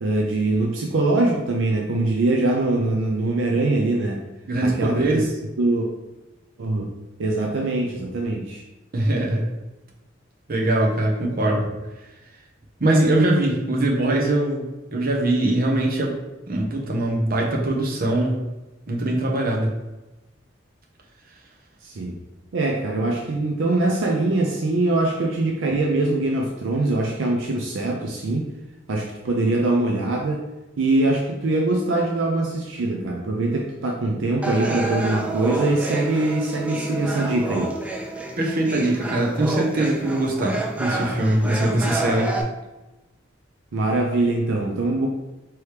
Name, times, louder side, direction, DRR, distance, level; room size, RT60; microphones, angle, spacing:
voice 1, 0.0-4.2 4.6-5.3 5.6-5.9 6.6-6.9 7.2-8.6 21.8-22.2 22.5-28.4 28.9-30.4 30.8-37.7 43.7-45.1, right 2 dB, 75° right, 0 dB, 0.5 m, -23 dB
voice 2, 4.5-5.2 8.9-9.5 10.5-11.7 12.8-14.6 14.9-16.2 16.5-18.4 18.9-19.7 38.4-42.4, right 1 dB, 50° right, -1 dB, 0.8 m, -22 dB
sound 1, 34.4-42.4, right 2 dB, 5° right, 0.4 m, -29 dB
4.6 x 3.0 x 3.3 m, 1.0 s
head